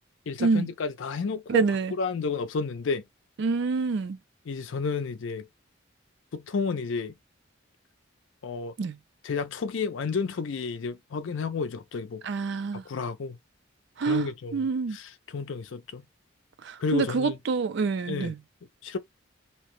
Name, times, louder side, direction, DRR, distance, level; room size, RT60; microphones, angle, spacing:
voice 1, 0.3-1.7 2.0-3.0 4.5-5.5 6.3-7.1 8.4-8.7 9.2-12.2 12.9-13.4 14.0-14.6 14.9-16.1 16.8-17.4 18.1-18.3 18.8-19.0, left 4 dB, 70° left, 0.5 m, -31 dB
voice 2, 1.5-1.9 3.4-4.2 8.8-9.0 12.2-12.8 14.0-15.0 16.6-18.4, right 4 dB, 60° right, 0.4 m, -27 dB
2.8 x 2.1 x 3.0 m
head